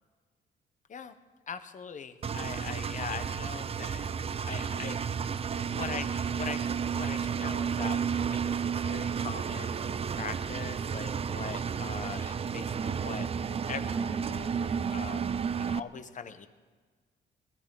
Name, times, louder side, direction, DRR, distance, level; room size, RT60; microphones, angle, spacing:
voice 1, 1.5-4.1 4.4-5.0 5.7-8.0 8.3-13.3 13.7-16.5, left 6 dB, 40° left, 10 dB, 1.0 m, -41 dB
Engine, 2.2-15.8, right 7 dB, 30° right, 0.5 m, -32 dB
21.0 x 14.5 x 4.0 m, 1.5 s
cardioid pair, 100°, 19 cm